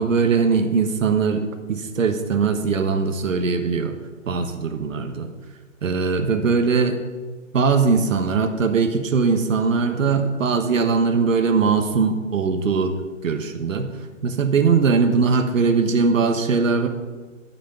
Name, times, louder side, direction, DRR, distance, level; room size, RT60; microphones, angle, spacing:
voice 1, 0.0-4.0 4.3-5.3 5.8-7.0 7.5-12.9 13.2-13.9 14.2-16.9, right 5 dB, 75° right, 6 dB, 1.3 m, -20 dB
13.5 x 6.7 x 5.1 m, 1.3 s
hypercardioid pair, 160°, 39 cm